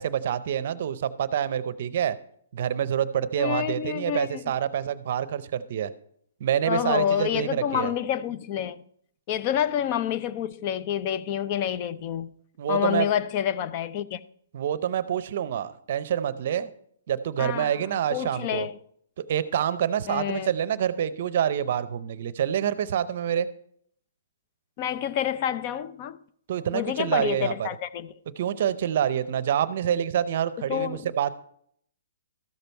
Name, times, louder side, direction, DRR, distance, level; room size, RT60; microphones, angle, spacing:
voice 1, 0.0-2.2 2.5-5.9 6.4-7.9 12.6-13.1 14.5-16.7 17.1-18.7 19.2-23.5 26.5-27.7 28.4-31.3, right 9 dB, 45° right, 0.6 m, -27 dB
voice 2, 3.4-4.4 6.7-8.8 9.3-12.3 12.7-14.2 17.4-17.7 18.1-18.7 20.1-20.5 24.8-26.2 26.7-28.1 30.6-31.3, left 10 dB, 30° left, 0.4 m, -28 dB
13.5 x 6.9 x 4.5 m
hypercardioid pair, 165°, 0 cm